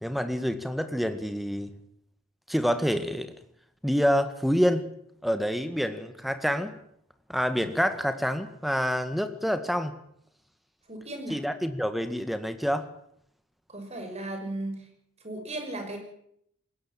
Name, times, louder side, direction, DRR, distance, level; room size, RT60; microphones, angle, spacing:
voice 1, 0.0-1.7 2.5-3.3 3.8-4.8 5.2-6.7 7.3-9.9 11.3-12.9, equal, ahead, 9 dB, 1.7 m, -27 dB
voice 2, 10.9-11.4 13.7-14.9 15.2-16.0, right 1 dB, 30° right, 5 dB, 6.0 m, -36 dB
20.5 x 17.5 x 7.6 m, 0.70 s
head